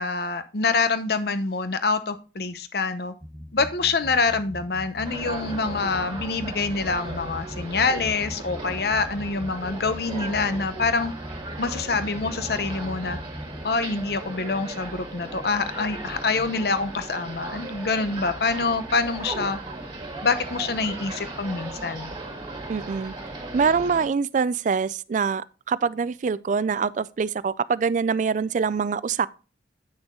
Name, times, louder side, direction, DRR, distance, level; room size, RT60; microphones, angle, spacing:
voice 1, 0.0-3.1 3.5-11.1 11.6-13.2 13.6-19.6 20.2-22.1, left 4 dB, 60° left, 0.8 m, -26 dB
sound 1, 3.2-13.6, equal, 5° right, 0.8 m, -40 dB
sound 2, 5.0-24.1, right 2 dB, 30° right, 2.0 m, -37 dB
voice 2, 22.7-23.1 23.5-29.3, right 5 dB, 45° right, 0.3 m, -24 dB
8.6 x 6.1 x 3.7 m
head